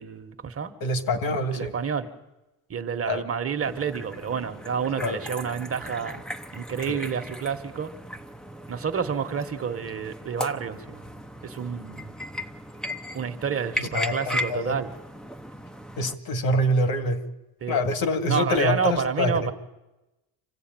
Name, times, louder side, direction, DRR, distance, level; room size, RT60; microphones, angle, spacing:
voice 1, 0.0-0.7 1.5-2.1 2.7-6.2 6.5-7.9 8.7-11.0 11.4-12.1 13.1-14.9 17.6-17.8 18.3-19.5, right 6 dB, 35° right, 7 dB, 1.6 m, -29 dB
voice 2, 0.8-1.7 3.1-3.2 5.0-5.2 6.9-7.0 13.8-14.8 16.0-17.2 17.7-19.5, left 1 dB, 65° left, 9 dB, 2.2 m, -25 dB
sound 1, 3.6-16.1, left 1 dB, ahead, 0.8 m, -37 dB
26.5 x 15.5 x 9.2 m, 1.0 s
cardioid pair, 140°, 39 cm